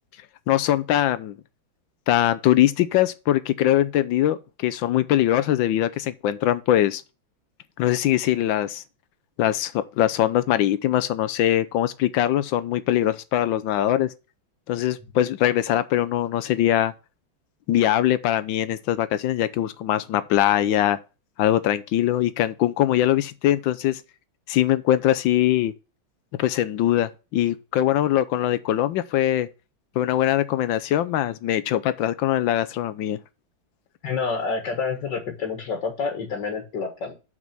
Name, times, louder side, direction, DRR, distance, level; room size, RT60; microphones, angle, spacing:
voice 1, 0.5-1.3 2.1-7.0 7.8-8.8 9.4-14.1 14.7-16.9 17.7-21.0 21.4-24.0 24.5-25.7 26.4-29.5 30.0-33.2, left 12 dB, 80° left, 1.3 m, -22 dB
voice 2, 34.0-37.1, left 5 dB, 60° left, 2.1 m, -28 dB
6.1 x 5.5 x 5.8 m
omnidirectional pair, 2.2 m